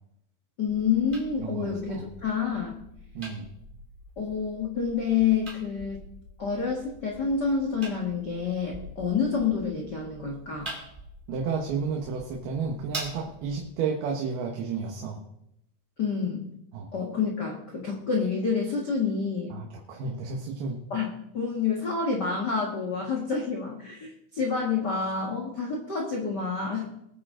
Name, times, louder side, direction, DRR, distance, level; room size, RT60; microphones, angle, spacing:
voice 1, 0.6-2.8 4.2-6.0 6.4-10.7 16.0-16.5 16.9-19.5 20.9-26.9, left 5 dB, 75° left, -1 dB, 0.9 m, -28 dB
sound 1, 0.7-13.7, right 1 dB, 15° right, 2.3 m, -44 dB
voice 2, 1.4-2.0 3.1-3.5 11.3-15.2 16.7-16.9 19.5-20.8, right 5 dB, 70° right, 0 dB, 3.1 m, -32 dB
22.0 x 9.4 x 3.8 m, 0.78 s
omnidirectional pair, 5.0 m